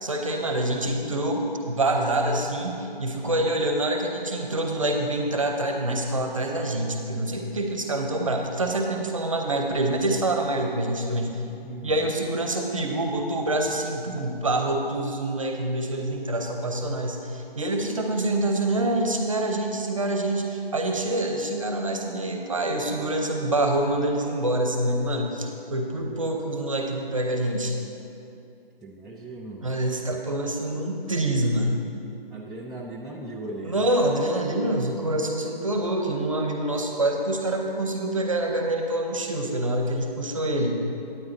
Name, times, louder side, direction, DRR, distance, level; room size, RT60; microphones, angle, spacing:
voice 1, 0.0-11.4 11.8-27.8 29.6-31.8 33.6-40.8, right 1 dB, 35° right, 3 dB, 0.7 m, -26 dB
voice 2, 11.6-12.1 28.8-29.7 32.3-33.9, right 2 dB, ahead, -7 dB, 0.3 m, -38 dB
9.4 x 8.7 x 3.9 m, 2.8 s
hypercardioid pair, 170°, 30 cm